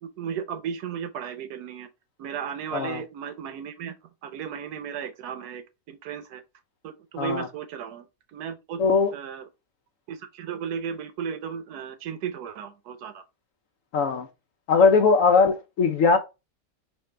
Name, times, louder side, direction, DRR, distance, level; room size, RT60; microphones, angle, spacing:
voice 1, 0.0-1.9 2.2-3.9 4.2-6.4 6.8-8.1 8.3-8.8 9.1-9.5 10.1-13.2, right 7 dB, 75° right, 1.2 m, -35 dB
voice 2, 8.8-9.1 13.9-14.3 14.7-16.2, left 4 dB, 65° left, 0.8 m, -20 dB
4.4 x 2.7 x 3.1 m
omnidirectional pair, 1.7 m